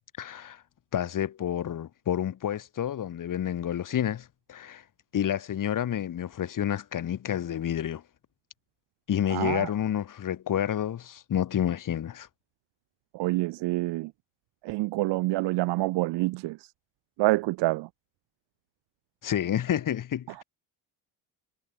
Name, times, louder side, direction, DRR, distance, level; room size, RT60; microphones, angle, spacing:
voice 1, 0.2-0.6 0.9-4.8 5.1-8.0 9.1-12.3 19.2-20.4, left 10 dB, 50° left, 5.0 m, -29 dB
voice 2, 9.3-9.7 13.1-14.1 14.6-16.7 17.2-17.9 20.3-20.4, right 21 dB, 85° right, 2.9 m, -27 dB
cardioid pair, 115°, 41 cm